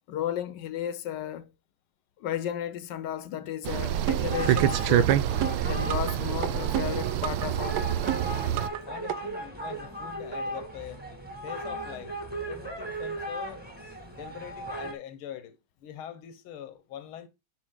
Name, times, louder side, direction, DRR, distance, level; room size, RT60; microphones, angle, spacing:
voice 1, 0.1-1.5 2.2-5.1 5.6-7.9, left 11 dB, 70° left, 1.2 m, -33 dB
sound 1, 3.7-8.7, right 12 dB, 80° right, 1.4 m, -26 dB
sound 2, 4.1-4.8 5.1-6.1 6.4-7.5 7.8-8.8 9.1-9.2, right 12 dB, 65° right, 1.0 m, -31 dB
sound 3, 4.3-14.9, right 1 dB, 5° right, 1.4 m, -37 dB
voice 2, 8.9-11.0 11.4-12.1 12.4-13.6 14.1-17.3, left 10 dB, 90° left, 1.7 m, -43 dB
11.0 x 4.6 x 3.7 m
omnidirectional pair, 2.3 m